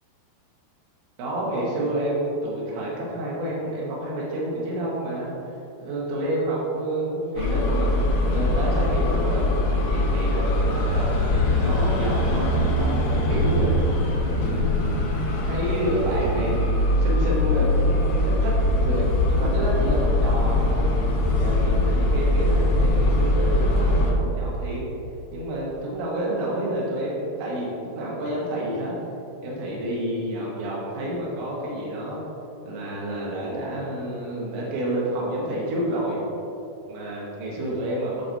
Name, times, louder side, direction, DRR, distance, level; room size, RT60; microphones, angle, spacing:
voice 1, 1.2-5.3 5.8-13.7 14.2-15.1 15.5-18.5 18.8-21.0 21.4-24.8 25.3-28.9 29.4-32.2 32.7-36.2 36.9-38.3, right 1 dB, 75° right, -5 dB, 3.7 m, -29 dB
sound 1, 7.4-24.1, left 1 dB, 75° left, 2.3 m, -22 dB
11.0 x 6.7 x 2.7 m, 2.7 s
omnidirectional pair, 5.4 m